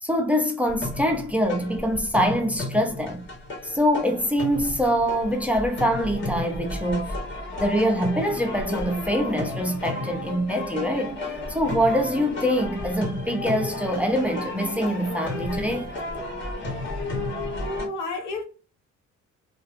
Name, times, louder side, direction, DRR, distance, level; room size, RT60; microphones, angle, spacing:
voice 1, 0.0-3.2 3.6-7.1 7.6-11.2 11.5-15.9, equal, 5° right, 0.5 m, -24 dB
sound 1, 0.7-17.9, left 2 dB, 40° left, 1.2 m, -33 dB
voice 2, 17.6-18.4, left 2 dB, 85° left, 0.9 m, -31 dB
2.4 x 2.4 x 2.4 m
cardioid pair, 90°, 30 cm